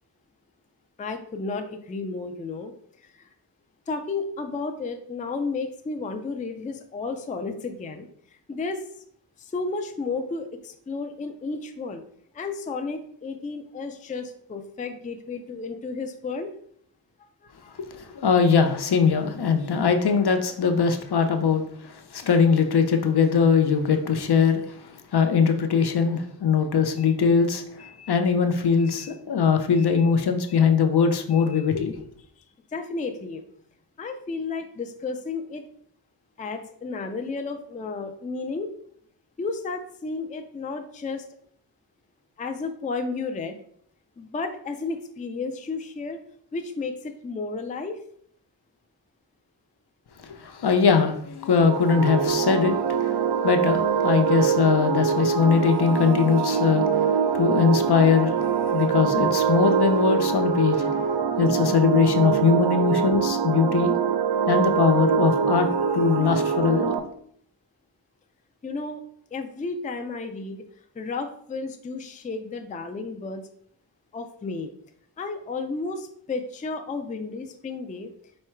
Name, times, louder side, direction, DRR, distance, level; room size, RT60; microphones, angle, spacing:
voice 1, 1.0-2.7 3.0-3.3 3.9-8.1 8.5-8.8 9.4-12.0 12.3-16.5 17.4-17.8 32.4-32.5 32.7-33.4 34.0-35.6 36.4-38.7 39.4-41.2 42.4-43.6 44.2-46.2 46.5-48.0 68.6-69.0 69.3-70.6 71.0-73.5 74.1-74.7 75.2-78.1, left 4 dB, 20° left, 6 dB, 0.4 m, -32 dB
voice 2, 17.8-32.0 50.2-61.1 61.4-64.0 64.5-65.7 65.9-66.9, left 6 dB, 60° left, 6 dB, 0.6 m, -21 dB
sound 1, 51.6-67.0, right 6 dB, 70° right, 0.5 m, -24 dB
4.6 x 2.2 x 4.4 m, 0.64 s
wide cardioid pair, 80°, 44 cm